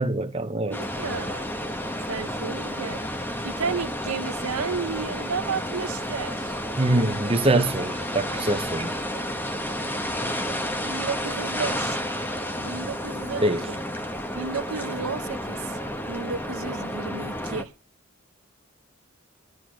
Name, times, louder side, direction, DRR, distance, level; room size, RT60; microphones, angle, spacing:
voice 1, 0.0-0.8 6.8-9.0 13.4-13.7, right 2 dB, 25° right, 0.9 m, -24 dB
voice 2, 0.6-1.8 2.1-6.6 10.8-12.0 12.6-13.8 14.3-15.8 16.1-17.7, right 5 dB, 85° right, 0.8 m, -33 dB
sound 1, 0.7-17.6, equal, 10° left, 1.0 m, -31 dB
10.5 x 9.5 x 6.4 m
head